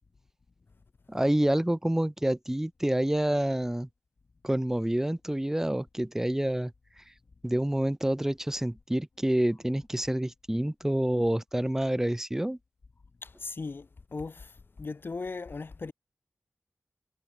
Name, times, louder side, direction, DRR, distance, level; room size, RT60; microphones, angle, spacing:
voice 1, 1.1-3.9 4.4-6.7 7.4-12.6, right 1 dB, 10° right, 1.4 m, -28 dB
voice 2, 13.2-14.5 14.8-15.9, left 4 dB, 55° left, 4.8 m, -38 dB
wide cardioid pair, 95°, 4 cm